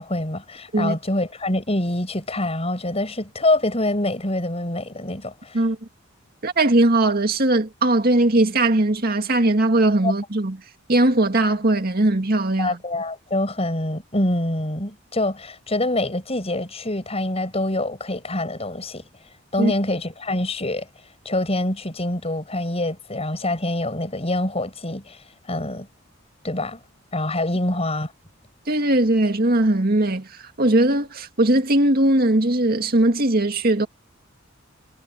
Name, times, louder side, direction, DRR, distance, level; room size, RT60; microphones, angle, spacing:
voice 1, 0.0-5.6 10.0-10.1 12.6-19.0 19.5-20.9 21.3-25.2 25.5-25.9 26.4-26.8 27.1-28.1, left 1 dB, 30° left, 7.1 m, -25 dB
voice 2, 6.4-10.6 10.9-12.8 19.6-19.7 28.7-33.9, right 1 dB, 50° right, 2.1 m, -19 dB
head